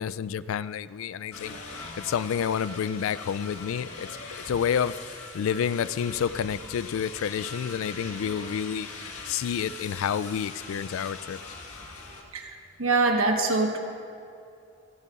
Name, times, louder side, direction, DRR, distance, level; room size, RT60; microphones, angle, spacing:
voice 1, 0.0-1.6 2.0-4.1 4.5-4.9 5.3-8.9 9.3-11.4, left 8 dB, 70° left, 17 dB, 0.3 m, -29 dB
sound 1, 1.3-12.2, left 3 dB, 90° left, 1.7 m, -41 dB
voice 2, 12.3-13.8, right 3 dB, 75° right, 3 dB, 1.3 m, -24 dB
28.0 x 10.5 x 2.5 m, 2.5 s
head